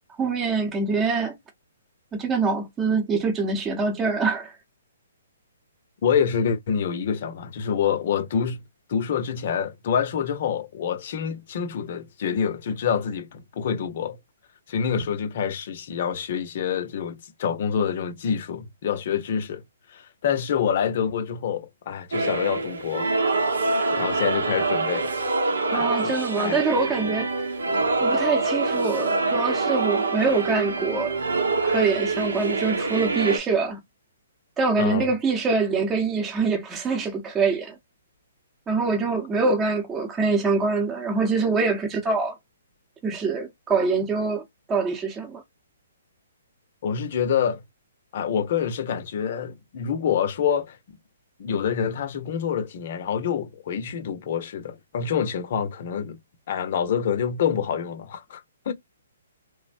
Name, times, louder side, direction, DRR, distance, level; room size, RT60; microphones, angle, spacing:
voice 1, 0.2-1.4 2.1-4.5 25.7-27.3 28.0-31.2 31.6-33.8 34.6-37.8 38.7-42.3 43.0-44.4 44.7-45.4, right 4 dB, 15° right, 0.7 m, -24 dB
voice 2, 6.0-8.6 8.9-14.2 14.7-19.6 19.9-23.1 23.9-25.1 25.7-26.6 34.8-35.1 46.8-47.6 48.1-50.8 51.4-56.2 56.5-58.7, left 7 dB, 50° left, 0.6 m, -27 dB
sound 1, 22.1-33.4, right 3 dB, 80° right, 1.0 m, -25 dB
3.3 x 2.0 x 2.4 m
hypercardioid pair, 135°, 0 cm